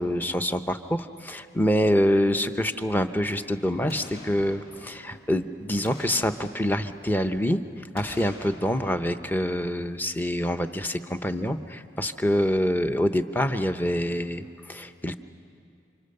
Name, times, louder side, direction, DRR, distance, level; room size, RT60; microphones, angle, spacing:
voice 1, 0.0-7.6 7.9-15.1, equal, 10° left, 9 dB, 0.7 m, -26 dB
Boom, 3.9-5.4 5.8-7.5 7.9-10.2 10.6-10.7, left 1 dB, 60° left, 6.6 m, -46 dB
29.5 x 26.5 x 6.7 m, 2.5 s
head